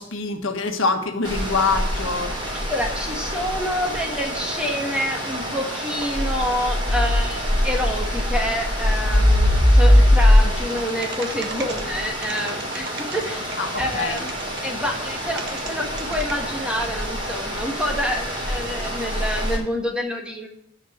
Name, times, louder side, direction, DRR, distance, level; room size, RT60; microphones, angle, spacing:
voice 1, 0.0-2.3 13.6-14.2, left 3 dB, 75° left, 4 dB, 1.4 m, -25 dB
sound 1, 1.2-19.6, equal, 25° right, 3.6 m, -23 dB
voice 2, 2.5-12.9 13.1-14.3 14.6-20.5, equal, 5° right, 1 dB, 1.6 m, -28 dB
sound 2, 10.8-11.8 12.1-13.3 13.5-14.7 15.4-15.7 16.0-16.3, right 5 dB, 55° right, 1.2 m, -36 dB
10.5 x 5.4 x 8.0 m, 0.75 s
head